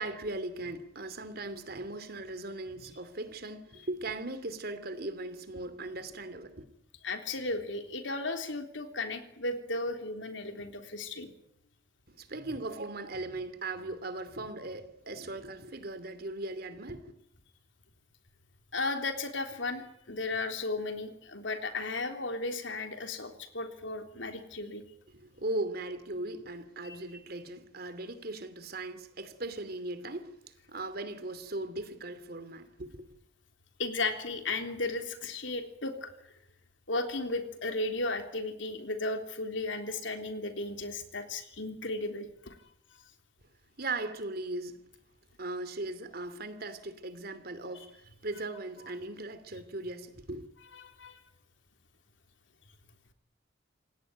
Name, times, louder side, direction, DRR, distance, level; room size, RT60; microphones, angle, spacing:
voice 1, 0.0-6.6 12.1-17.1 25.1-33.1 43.8-44.8 45.4-50.5, right 2 dB, 55° right, 2.9 m, -38 dB
voice 2, 7.0-11.3 18.7-24.8 26.8-27.0 33.8-36.1 36.9-42.6 50.8-51.2, left 2 dB, 85° left, 3.5 m, -35 dB
28.0 x 17.5 x 9.4 m
head